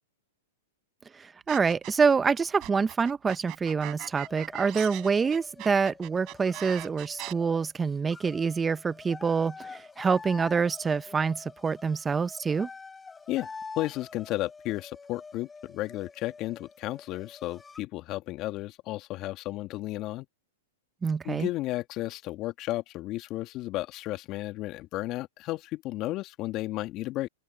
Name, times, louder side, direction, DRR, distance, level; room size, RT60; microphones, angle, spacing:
voice 1, 1.1-12.7 21.0-21.5, right 5 dB, 15° right, 0.6 m, -26 dB
sound 1, 1.5-2.1 2.6-7.3, right 21 dB, 40° right, 7.1 m, -40 dB
sound 2, 4.2-17.8, left 4 dB, 15° left, 5.3 m, -47 dB
voice 2, 13.8-20.3 21.2-27.3, left 17 dB, 40° left, 1.8 m, -33 dB
open air
hypercardioid pair, 120°, 0 cm